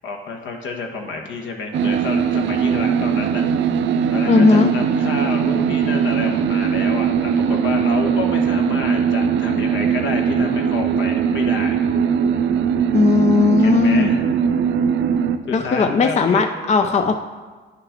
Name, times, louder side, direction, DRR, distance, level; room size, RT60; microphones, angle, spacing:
voice 1, 0.0-3.4 4.1-11.8 13.6-14.2 15.5-16.4 16.8-16.9, left 3 dB, 70° left, 2 dB, 1.3 m, -29 dB
sound 1, 1.7-15.4, right 7 dB, 65° right, 0.5 m, -20 dB
voice 2, 4.3-4.7 12.9-14.2 15.5-17.2, left 4 dB, 35° left, 7 dB, 0.5 m, -17 dB
9.9 x 6.6 x 3.7 m, 1.4 s
cardioid pair, 90°, 20 cm